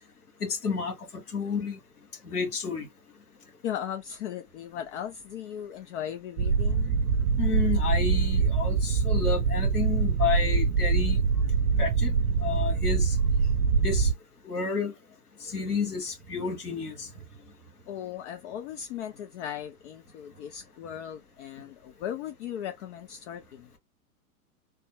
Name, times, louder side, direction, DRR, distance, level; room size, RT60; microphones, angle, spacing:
voice 1, 0.4-0.9 1.3-1.8 2.2-2.9 7.4-11.2 11.8-12.1 12.4-13.2 13.8-14.1 14.4-14.9 15.4-17.1, left 5 dB, 90° left, 1.9 m, -30 dB
voice 2, 3.6-6.9 17.9-23.7, left 10 dB, 55° left, 0.5 m, -37 dB
sound 1, 6.4-14.1, right 5 dB, 90° right, 0.5 m, -24 dB
3.4 x 2.0 x 2.9 m
hypercardioid pair, 115°, 45 cm